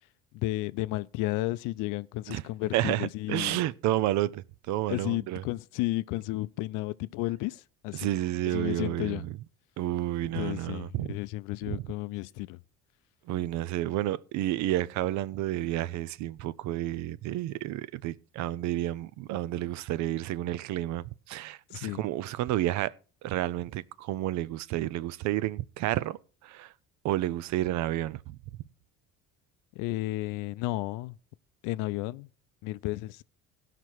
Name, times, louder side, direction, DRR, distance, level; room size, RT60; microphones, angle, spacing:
voice 1, 0.3-3.6 4.9-8.1 8.5-9.2 10.3-12.6 21.7-22.0 29.8-31.2 31.6-32.3 32.6-33.2, left 18 dB, 75° left, 0.5 m, -33 dB
voice 2, 2.7-5.4 7.9-9.3 9.8-11.2 11.6-11.9 13.3-22.9 23.2-26.7 27.0-28.4, right 14 dB, 60° right, 0.5 m, -31 dB
16.0 x 5.9 x 4.6 m
cardioid pair, 125°, 32 cm